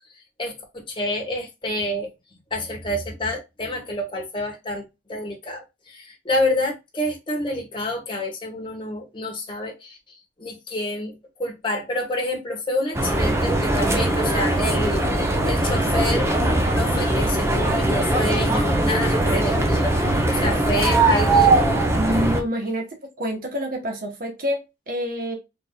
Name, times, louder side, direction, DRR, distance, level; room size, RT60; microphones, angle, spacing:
voice 1, 0.4-2.1 2.5-4.8 5.1-10.0 10.4-11.1 11.4-15.0 15.5-16.3 16.7-20.0 20.3-21.6, left 1 dB, 25° left, 1.5 m, -28 dB
sound 1, 12.9-22.4, right 2 dB, 15° right, 0.8 m, -20 dB
voice 2, 22.0-22.8 23.2-25.4, equal, 50° right, 1.2 m, -27 dB
4.0 x 3.5 x 2.3 m
head